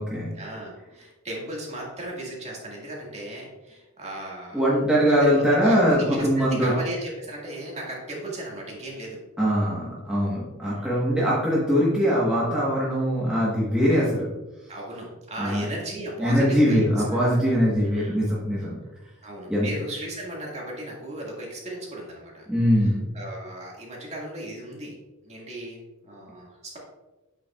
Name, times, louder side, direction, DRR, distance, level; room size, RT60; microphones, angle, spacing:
voice 1, 0.3-4.6 5.2-5.3 5.6-9.2 10.6-11.0 14.7-16.8 17.1-17.4 17.8-18.2 19.2-22.5 23.1-25.0 25.2-26.8, right 1 dB, 30° right, -3 dB, 1.9 m, -36 dB
voice 2, 4.5-6.7 9.4-14.3 15.4-15.6 16.2-18.7 19.5-19.7 22.5-23.1, equal, 5° right, -7 dB, 1.2 m, -22 dB
8.0 x 7.1 x 2.4 m, 1.1 s
head